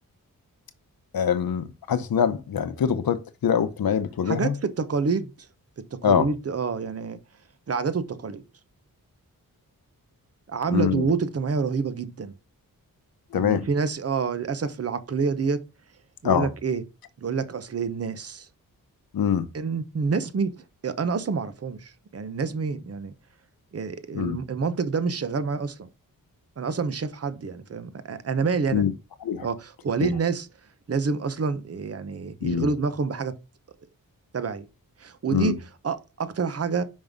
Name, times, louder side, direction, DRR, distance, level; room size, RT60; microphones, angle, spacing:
voice 1, 1.1-4.5 6.0-6.3 10.7-11.1 13.3-13.6 16.2-16.5 19.1-19.5 24.1-24.4 28.7-28.9 29.2-29.5 30.0-30.1 32.4-32.7 35.3-35.5, left 8 dB, 85° left, 0.8 m, -24 dB
voice 2, 4.2-5.5 5.9-7.2 7.7-8.4 10.5-12.3 13.3-15.6 16.2-16.8 17.2-18.5 19.5-23.1 23.7-25.9 26.6-28.9 29.4-30.5 30.9-33.3 34.3-34.7 35.0-36.8, right 5 dB, 45° right, 0.8 m, -28 dB
5.4 x 5.3 x 3.6 m
wide cardioid pair, 110°, 35 cm